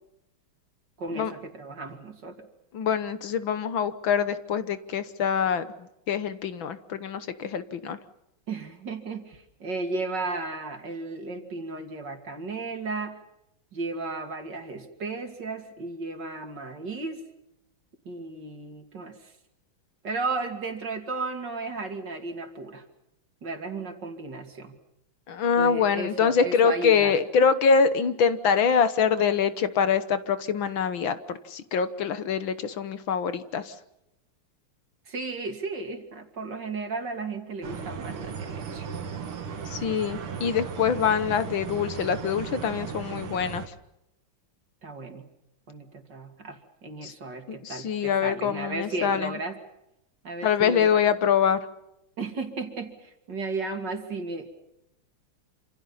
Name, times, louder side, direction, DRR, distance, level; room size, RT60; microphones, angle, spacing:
voice 1, 1.0-2.5 8.5-13.2 13.7-17.2 18.0-19.3 20.0-22.8 23.4-24.7 25.6-27.1 35.1-38.9 44.8-45.3 45.7-49.6 50.2-51.0 52.2-54.5, right 3 dB, 55° right, 5 dB, 3.2 m, -34 dB
voice 2, 2.7-5.7 6.1-8.0 25.3-33.7 39.7-43.6 47.0-47.1 47.5-49.3 50.4-51.6, left 6 dB, 65° left, 12 dB, 1.9 m, -24 dB
sound 1, 37.6-43.7, right 6 dB, 80° right, 2.6 m, -36 dB
27.5 x 27.0 x 5.6 m, 0.87 s
omnidirectional pair, 2.4 m